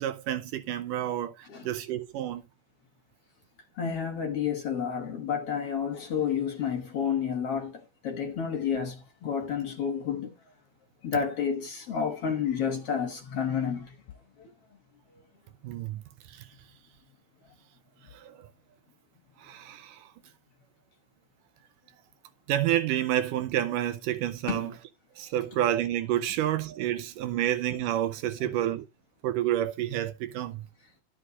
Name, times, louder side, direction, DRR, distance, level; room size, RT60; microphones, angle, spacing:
voice 1, 0.0-1.3 1.6-2.5 15.6-16.0 16.3-16.4 18.1-18.4 19.4-20.1 22.5-24.7 25.2-28.9 29.2-30.7, right 12 dB, 80° right, 2.4 m, -29 dB
voice 2, 3.8-10.4 11.0-14.0 14.4-14.5 24.5-24.7 28.4-28.5, left 7 dB, 55° left, 1.8 m, -30 dB
12.0 x 5.5 x 3.8 m
omnidirectional pair, 3.8 m